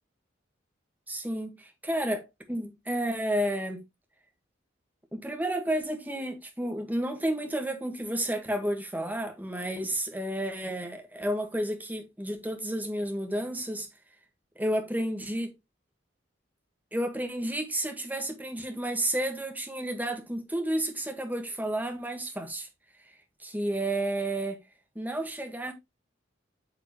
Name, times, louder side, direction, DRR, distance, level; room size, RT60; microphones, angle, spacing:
voice 1, 1.1-3.8 5.1-13.9 14.5-15.5 16.9-22.7 23.0-24.6 24.9-25.7, right 1 dB, 10° right, 1.5 m, -31 dB
9.0 x 5.2 x 3.0 m
head